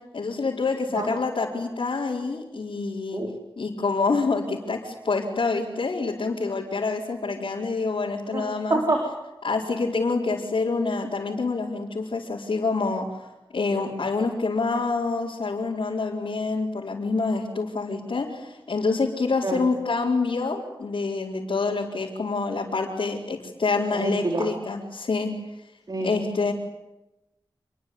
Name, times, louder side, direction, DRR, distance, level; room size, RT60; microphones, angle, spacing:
voice 1, 0.1-3.2 3.6-8.8 9.4-13.1 13.5-25.3 26.0-26.5, left 3 dB, 80° left, -6 dB, 4.5 m, -27 dB
voice 2, 8.7-9.0 19.4-19.6 23.9-24.5 25.9-26.1, right 2 dB, 50° right, 2 dB, 4.4 m, -26 dB
28.0 x 22.0 x 9.6 m, 0.97 s
wide cardioid pair, 80°, 9 cm